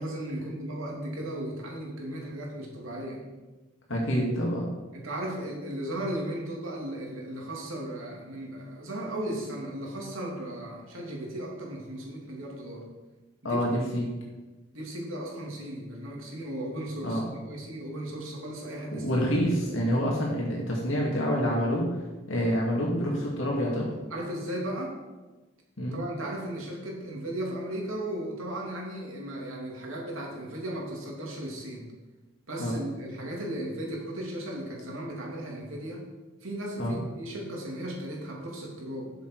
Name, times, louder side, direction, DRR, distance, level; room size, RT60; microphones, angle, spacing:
voice 1, 0.0-3.2 4.9-12.9 13.4-13.6 14.7-19.1 19.5-19.8 24.1-24.9 25.9-31.9 32.5-36.1 36.4-39.1, right 1 dB, 80° right, -1 dB, 2.8 m, -36 dB
voice 2, 3.9-4.7 13.4-14.1 17.0-17.3 18.9-21.8 22.3-23.9 25.8-26.0 32.6-32.8 36.8-36.9, equal, 70° left, -3 dB, 2.1 m, -27 dB
12.0 x 7.2 x 4.7 m, 1.2 s
head